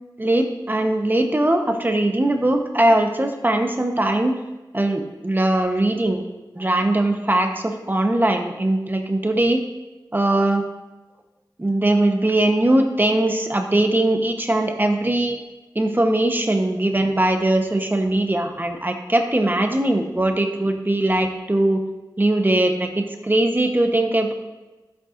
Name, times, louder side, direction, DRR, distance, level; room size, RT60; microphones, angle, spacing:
voice 1, 0.2-4.4 4.7-6.2 6.5-9.6 10.1-10.6 11.6-15.4 15.7-21.8 22.2-24.3, right 1 dB, 25° right, 4 dB, 1.0 m, -20 dB
11.5 x 7.9 x 2.6 m, 1.1 s
wide cardioid pair, 60°, 8 cm